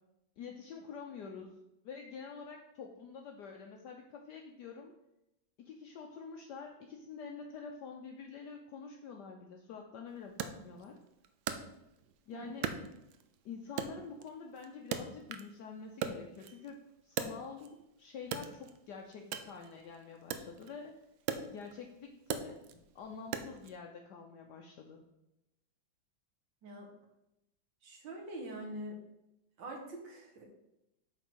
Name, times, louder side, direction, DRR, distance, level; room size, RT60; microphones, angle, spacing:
voice 1, 0.4-1.6 1.8-4.9 5.6-11.0 12.3-12.7 13.4-21.0 21.5-22.6 22.9-25.1, left 5 dB, 65° left, 2 dB, 1.2 m, -47 dB
Wood, 10.4-12.2 12.6-13.4 13.8-15.6 15.9-17.8 18.2-23.8, right 8 dB, 85° right, 1.4 m, -40 dB
voice 2, 27.8-29.0 29.6-30.4, right 1 dB, 70° right, 1 dB, 2.1 m, -44 dB
8.2 x 3.8 x 6.1 m, 0.89 s
omnidirectional pair, 2.1 m